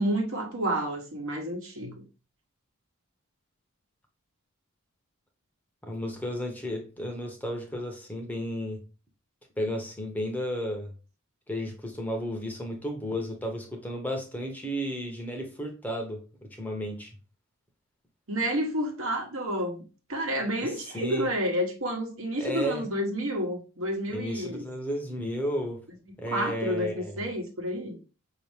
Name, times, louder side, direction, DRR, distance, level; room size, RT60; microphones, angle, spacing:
voice 1, 0.0-2.0 18.3-19.8 20.1-24.6 26.3-28.0, equal, 70° right, 1.1 m, -30 dB
voice 2, 5.8-8.8 9.6-10.9 11.5-17.1 20.6-21.3 22.4-22.8 24.1-25.8 26.2-27.2, equal, 10° left, 0.7 m, -33 dB
5.3 x 2.8 x 3.4 m
head